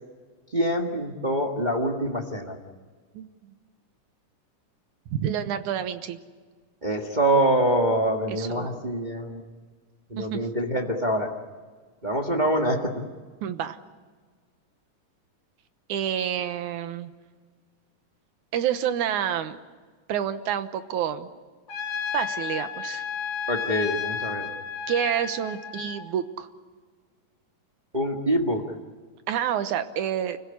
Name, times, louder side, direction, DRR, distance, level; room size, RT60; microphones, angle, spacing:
voice 1, 0.5-2.6 6.8-9.4 10.1-11.3 12.0-13.0 23.5-24.5 27.9-28.8, right 1 dB, 25° right, 1 dB, 0.9 m, -25 dB
voice 2, 5.1-6.2 8.3-8.8 10.2-10.4 13.4-13.8 15.9-17.1 18.5-19.6 20.1-21.3 22.1-23.0 24.9-26.5 29.3-30.4, right 9 dB, 70° right, 10 dB, 2.4 m, -28 dB
Trumpet, 21.7-26.0, left 7 dB, 60° left, 4.0 m, -32 dB
29.5 x 16.0 x 9.8 m, 1.5 s
omnidirectional pair, 3.9 m